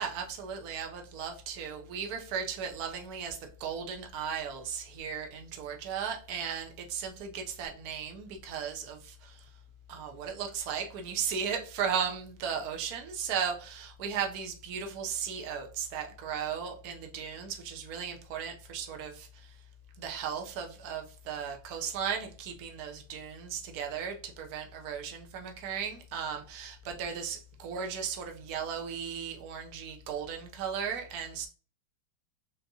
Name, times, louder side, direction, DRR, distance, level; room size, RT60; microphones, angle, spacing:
voice 1, 0.0-9.5 9.9-19.6 20.0-31.5, right 7 dB, 70° right, 4 dB, 0.9 m, -36 dB
4.0 x 3.4 x 2.7 m, 0.38 s
omnidirectional pair, 2.3 m